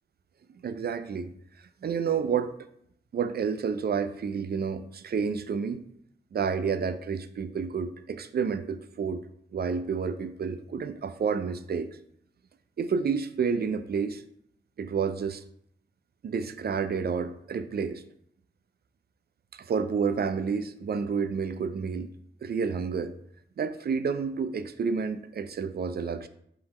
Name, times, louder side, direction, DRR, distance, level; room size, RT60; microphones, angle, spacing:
voice 1, 0.6-1.3 1.8-2.6 3.1-5.8 6.3-9.2 9.5-12.0 12.8-14.2 14.8-15.4 16.2-18.0 19.5-22.1 22.4-23.2 23.6-26.3, right 6 dB, 50° right, 11 dB, 0.4 m, -30 dB
3.8 x 2.9 x 4.2 m, 0.71 s
cardioid pair, 50°, 20 cm